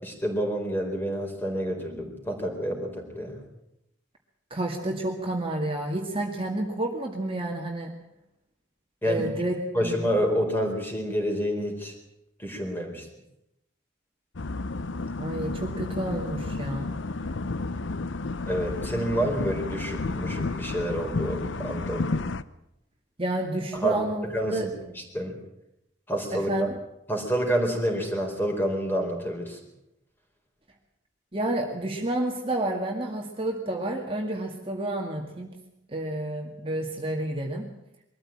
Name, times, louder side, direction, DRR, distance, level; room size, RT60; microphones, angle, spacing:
voice 1, 0.0-3.4 9.0-9.3 9.7-11.9 12.4-13.1 18.5-22.1 23.8-25.4 26.1-26.7 27.1-29.6, equal, 10° left, 2 dB, 4.3 m, -28 dB
voice 2, 4.5-7.9 9.0-10.0 15.2-16.9 23.2-24.7 26.3-26.7 31.3-35.5 35.9-37.7, right 1 dB, 30° right, 1 dB, 2.1 m, -30 dB
sound 1, 14.4-22.4, left 3 dB, 75° left, 0.8 m, -31 dB
22.5 x 14.0 x 8.8 m, 0.85 s
head